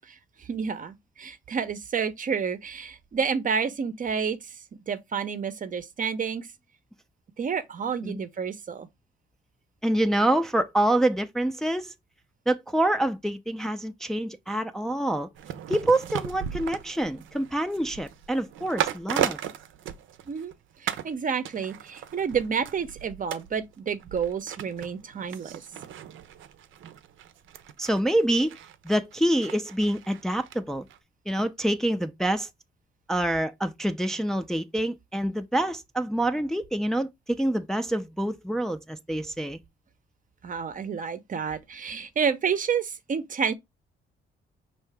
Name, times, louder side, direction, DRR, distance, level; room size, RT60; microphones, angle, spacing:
voice 1, 0.1-4.6 4.9-6.5 7.4-8.9 20.3-20.5 20.8-25.6 40.4-43.5, right 6 dB, 40° right, 0.7 m, -30 dB
voice 2, 9.8-11.9 12.5-15.3 15.7-19.4 27.8-28.6 28.8-30.9 31.3-32.5 33.1-39.6, right 1 dB, ahead, 0.5 m, -26 dB
sound 1, 15.4-20.5 20.9-21.1 21.5-30.6 30.9-31.0, right 10 dB, 80° right, 0.6 m, -36 dB
5.5 x 2.8 x 3.4 m
cardioid pair, 90°, 20 cm